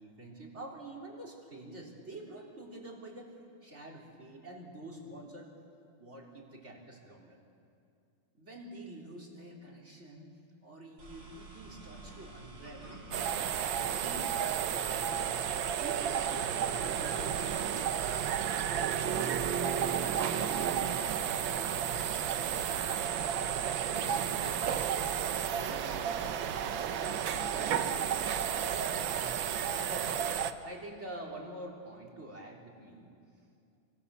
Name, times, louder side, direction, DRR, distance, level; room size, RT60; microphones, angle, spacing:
voice 1, 0.0-3.3 3.6-5.5 6.0-7.4 8.3-10.3 10.6-13.0 13.6-14.3 14.6-15.3 15.8-18.0 23.8-25.0 25.5-26.7 27.5-28.1 29.7-30.1 30.6-33.1, right 1 dB, 30° right, -2 dB, 4.0 m, -47 dB
sound 1, 11.0-17.4, right 3 dB, 90° right, 8.6 m, -51 dB
sound 2, 13.1-30.5, right 8 dB, 65° right, 1.6 m, -32 dB
29.0 x 25.0 x 7.1 m, 2.5 s
omnidirectional pair, 2.4 m